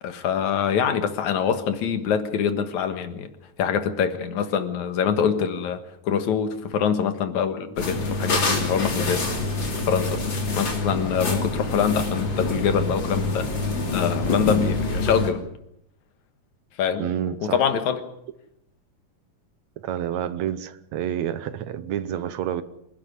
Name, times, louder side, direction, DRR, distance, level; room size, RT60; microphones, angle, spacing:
voice 1, 0.0-3.3 3.6-9.2 9.9-13.5 13.9-15.4 16.8-17.1 17.4-18.0, left 7 dB, 75° left, 2.9 m, -24 dB
sound 1, 7.8-15.3, left 2 dB, 40° left, 3.7 m, -26 dB
voice 2, 17.0-17.7 19.8-22.6, right 10 dB, 75° right, 2.2 m, -29 dB
26.0 x 11.5 x 9.7 m
omnidirectional pair, 3.3 m